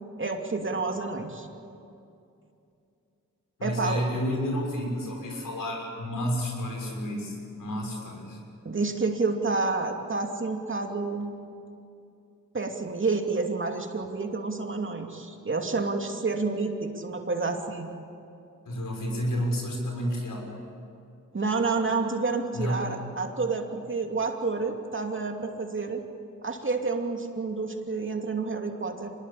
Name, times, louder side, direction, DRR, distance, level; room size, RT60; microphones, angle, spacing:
voice 1, 0.2-1.5 3.6-4.0 8.6-11.3 12.5-17.9 21.3-26.0 26.4-29.1, right 3 dB, 40° right, 3 dB, 2.7 m, -29 dB
voice 2, 3.6-8.4 18.7-20.5 22.5-22.9, equal, 80° left, 0 dB, 6.5 m, -30 dB
25.0 x 20.5 x 8.7 m, 2.6 s
cardioid pair, 70°, 32 cm